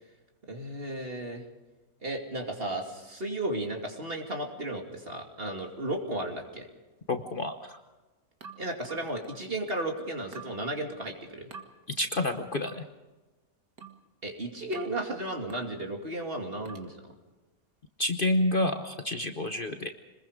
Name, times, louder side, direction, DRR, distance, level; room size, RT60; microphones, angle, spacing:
voice 1, 0.5-1.4 2.0-6.7 8.6-11.5 14.2-17.0, right 1 dB, 40° right, 2 dB, 2.8 m, -34 dB
voice 2, 7.1-7.8 12.0-12.8 18.0-19.9, left 1 dB, 40° left, 6 dB, 1.0 m, -29 dB
sound 1, 8.4-9.5 10.3-10.6 11.5-11.7 12.6-12.9 13.8-14.1 14.7-15.0 15.5-15.8 16.6-16.9, right 5 dB, 80° right, 2.2 m, -47 dB
26.5 x 21.0 x 5.1 m, 1.2 s
omnidirectional pair, 1.5 m